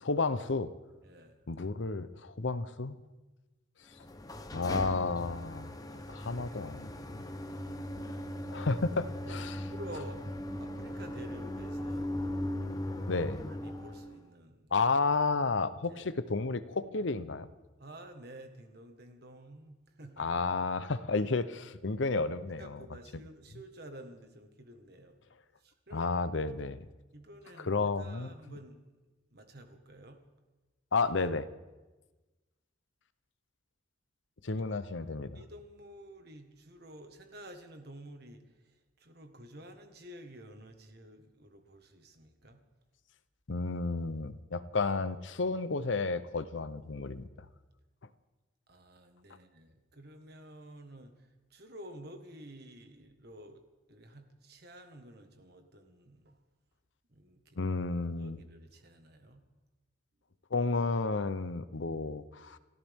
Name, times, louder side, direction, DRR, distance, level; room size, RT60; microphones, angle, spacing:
voice 1, 0.0-0.7 1.5-3.0 4.5-5.7 6.1-7.2 8.5-9.6 13.1-13.4 14.7-17.5 20.2-22.8 25.9-26.9 27.6-28.6 30.9-31.5 34.4-35.4 43.5-47.3 57.6-58.4 60.5-62.6, left 3 dB, 70° left, 13 dB, 0.8 m, -32 dB
voice 2, 1.0-1.4 4.5-4.7 5.4-6.6 6.9-7.9 9.2-10.3 10.6-12.1 13.1-13.2 13.6-14.7 15.9-16.0 17.8-20.3 21.8-22.0 22.6-25.2 25.6-26.1 27.1-28.8 29.3-30.2 34.5-34.6 34.9-35.1 35.3-38.4 39.0-42.6 48.7-53.6 53.9-56.4 57.1-57.6 58.1-59.4, right 1 dB, 55° right, 6 dB, 1.6 m, -51 dB
sound 1, 3.9-14.2, left 1 dB, 20° left, 0.9 m, -39 dB
29.5 x 13.0 x 3.6 m, 1.2 s
head